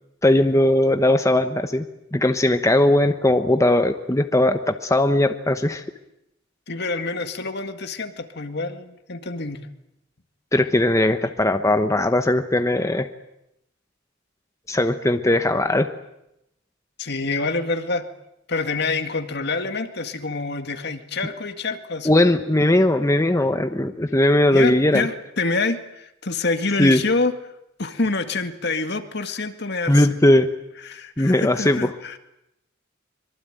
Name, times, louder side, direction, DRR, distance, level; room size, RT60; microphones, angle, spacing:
voice 1, 0.2-1.8 2.1-5.8 10.5-13.1 14.7-15.9 22.0-25.1 26.8-27.0 29.9-30.5 31.2-31.9, left 1 dB, 15° left, 7 dB, 1.1 m, -19 dB
voice 2, 6.7-9.7 17.0-18.1 18.5-22.1 24.5-27.3 27.8-30.2 30.8-32.2, left 3 dB, 55° left, 8 dB, 2.0 m, -27 dB
25.0 x 23.0 x 9.1 m, 0.84 s
head